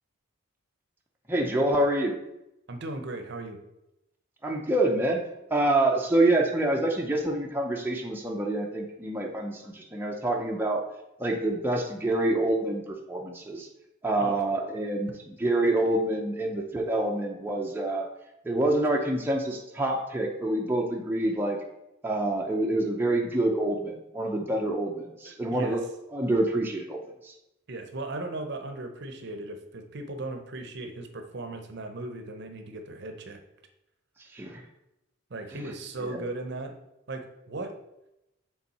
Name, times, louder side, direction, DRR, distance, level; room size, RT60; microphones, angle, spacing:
voice 1, 1.3-2.2 4.4-5.2 5.5-10.8 11.2-13.7 14.0-18.1 18.4-21.6 22.0-25.8 26.1-27.3 34.3-34.6 36.0-36.3, right 1 dB, 10° right, 0 dB, 0.6 m, -27 dB
voice 2, 2.7-3.6 14.2-14.4 25.2-25.8 27.7-33.4 35.3-36.7 37.1-37.8, right 2 dB, 50° right, 6 dB, 0.7 m, -37 dB
7.1 x 3.6 x 4.2 m, 0.89 s
head